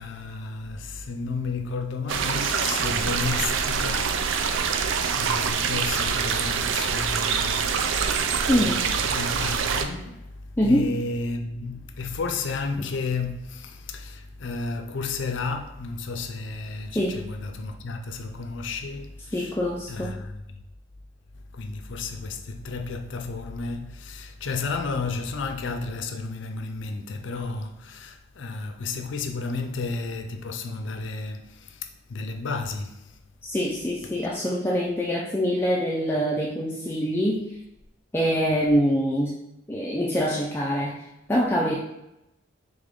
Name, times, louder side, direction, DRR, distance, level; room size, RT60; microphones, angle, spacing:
voice 1, 0.0-19.5 19.9-20.4 21.5-33.2 34.0-34.2, left 4 dB, 70° left, 0.5 m, -33 dB
sound 1, 2.1-9.8, right 6 dB, 80° right, 0.4 m, -25 dB
voice 2, 8.5-8.8 10.6-10.9 12.8-12.9 16.9-17.2 19.3-20.2 33.4-37.4 38.1-39.3 39.7-41.0 41.3-41.7, equal, 10° left, 0.4 m, -24 dB
3.5 x 3.5 x 3.8 m
head